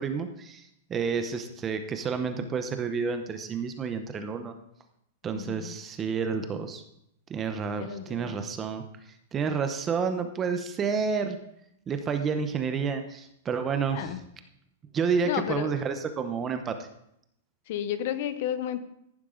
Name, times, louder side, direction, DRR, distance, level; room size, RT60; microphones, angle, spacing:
voice 1, 0.0-4.5 5.2-6.8 7.3-8.8 9.3-11.4 11.9-14.2 14.9-16.8, right 5 dB, 15° right, 7 dB, 0.8 m, -30 dB
voice 2, 5.3-5.7 7.8-8.4 13.9-14.2 15.2-15.7 17.7-18.8, left 10 dB, 40° left, 13 dB, 0.7 m, -32 dB
14.5 x 11.0 x 3.8 m, 0.76 s
supercardioid pair, 175°, 0 cm